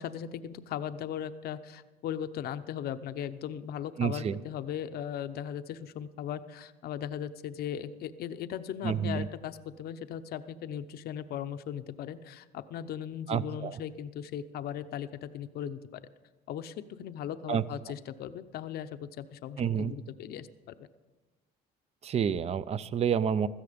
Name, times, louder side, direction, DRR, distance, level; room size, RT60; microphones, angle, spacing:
voice 1, 0.0-16.0 16.5-20.9, left 9 dB, 65° left, 10 dB, 0.7 m, -38 dB
voice 2, 4.0-4.4 8.8-9.3 13.3-13.8 17.5-17.6 19.6-19.9 22.0-23.5, right 7 dB, 40° right, 17 dB, 0.6 m, -29 dB
16.5 x 13.5 x 5.2 m, 1.2 s
cardioid pair, 110°, 17 cm